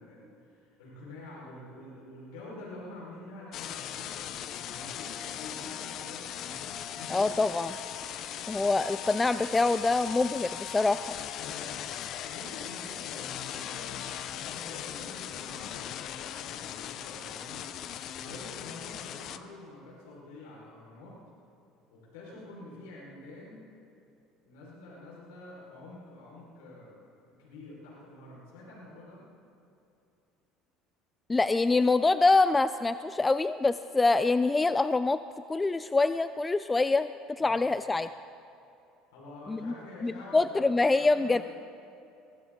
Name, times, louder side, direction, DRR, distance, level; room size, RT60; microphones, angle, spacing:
voice 1, 0.0-7.3 11.4-11.9 12.2-17.7 18.1-21.2 21.9-23.6 24.4-29.2 37.4-37.7 39.1-41.4, left 2 dB, 80° left, -5 dB, 4.8 m, -47 dB
sound 1, 3.5-19.4, left 10 dB, 60° left, 0.8 m, -39 dB
voice 2, 7.1-7.7 8.5-11.1 31.3-35.2 35.5-37.1 37.4-38.1 39.5-39.7 40.0-41.4, left 3 dB, 20° left, 13 dB, 0.4 m, -25 dB
22.5 x 16.0 x 3.8 m, 2.7 s
hypercardioid pair, 75°, 0 cm